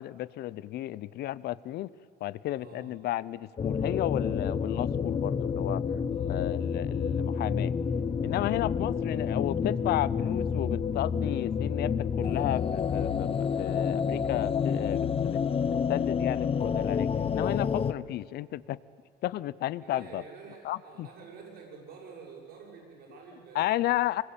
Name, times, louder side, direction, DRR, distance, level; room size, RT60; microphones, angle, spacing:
voice 1, 0.0-1.9 2.2-5.8 6.3-7.7 8.2-18.8 19.2-20.2 20.6-21.1 23.5-24.2, left 14 dB, 70° left, 20 dB, 0.7 m, -33 dB
voice 2, 2.6-3.0 6.1-6.6 8.5-8.7 19.8-24.0, right 5 dB, 75° right, -6 dB, 7.3 m, -49 dB
sound 1, 3.6-17.9, left 6 dB, 35° left, 1.0 m, -29 dB
25.0 x 21.5 x 8.8 m, 2.5 s
cardioid pair, 110°, 17 cm